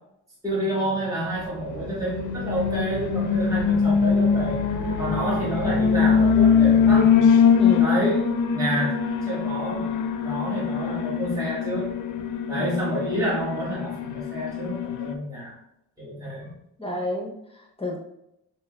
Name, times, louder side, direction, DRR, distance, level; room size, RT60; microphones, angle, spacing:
voice 1, 0.4-4.6 5.0-7.1 7.8-9.0 9.3-11.9 12.5-15.6 16.0-16.5, right 1 dB, 10° right, -7 dB, 1.4 m, -29 dB
Alarm, 1.7-15.1, left 6 dB, 65° left, 0.5 m, -22 dB
voice 2, 7.6-7.9 12.5-12.9 16.8-18.0, left 1 dB, 15° left, -1 dB, 0.8 m, -31 dB
5.3 x 2.9 x 2.2 m, 0.80 s
cardioid pair, 95°, 34 cm